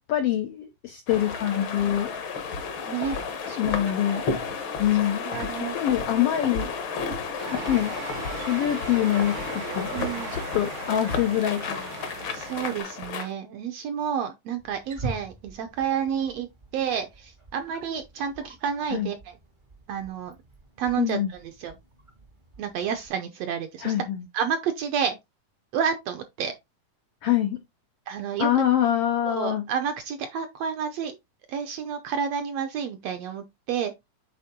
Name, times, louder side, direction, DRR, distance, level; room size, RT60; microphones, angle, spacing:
voice 1, 0.0-2.1 3.6-4.2 4.8-6.7 7.5-8.0 8.3-9.9 10.3-12.2 18.9-19.1 21.0-21.3 23.8-24.3 27.2-27.6 28.4-29.6, left 11 dB, 80° left, 1.3 m, -25 dB
sound 1, 1.1-13.3, left 5 dB, 55° left, 1.4 m, -32 dB
voice 2, 2.9-3.2 3.5-4.2 5.3-5.8 9.9-10.3 12.3-16.5 16.7-19.2 19.9-20.4 20.8-21.2 21.6-21.7 22.6-23.9 24.3-25.2 25.7-26.5 28.1-28.5 29.3-31.1 31.5-33.9, right 7 dB, 75° right, 1.6 m, -30 dB
sound 2, 7.4-12.8, right 8 dB, 90° right, 1.1 m, -39 dB
Wild animals, 14.6-23.1, right 2 dB, 35° right, 0.8 m, -44 dB
8.6 x 3.6 x 3.6 m
omnidirectional pair, 3.6 m